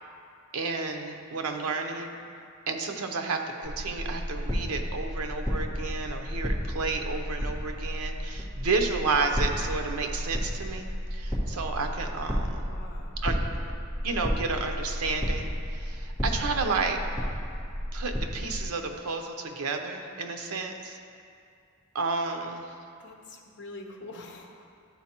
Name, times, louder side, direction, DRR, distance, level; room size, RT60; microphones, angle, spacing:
voice 1, 0.5-2.1 2.7-12.7 13.2-13.4 14.0-17.0 17.9-21.0 21.9-22.7, right 4 dB, 85° right, 5 dB, 0.6 m, -31 dB
voice 2, 1.4-2.1 12.7-13.2 23.0-24.8, left 2 dB, 55° left, 1 dB, 0.8 m, -46 dB
sound 1, 3.6-18.7, equal, 10° right, 1.6 m, -32 dB
12.0 x 4.1 x 2.9 m, 2.4 s
head